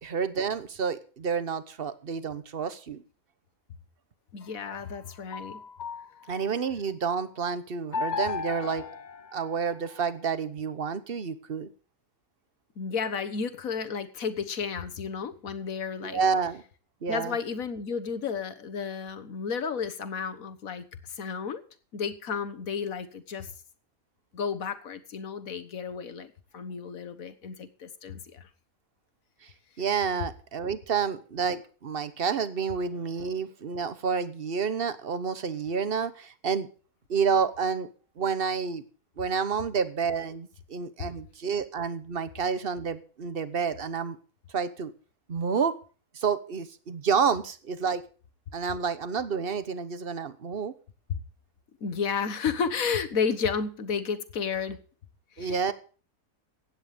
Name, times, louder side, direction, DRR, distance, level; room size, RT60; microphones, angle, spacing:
voice 1, 0.0-3.0 6.3-8.8 9.3-11.7 16.0-16.6 17.0-17.4 29.8-36.7 37.1-37.9 38.2-38.8 39.2-44.2 44.5-44.9 45.3-45.7 46.1-48.0 48.5-50.7 55.4-55.7, right 6 dB, 45° right, 14 dB, 1.2 m, -29 dB
voice 2, 4.3-5.6 12.8-16.2 17.1-21.6 21.9-23.5 24.3-28.5 51.1-51.2 51.8-54.8 55.4-55.7, left 6 dB, 70° left, 10 dB, 1.7 m, -32 dB
sound 1, 4.4-6.7 7.9-10.2, left 5 dB, 45° left, 0.6 m, -36 dB
16.0 x 9.8 x 5.1 m, 0.38 s
omnidirectional pair, 1.5 m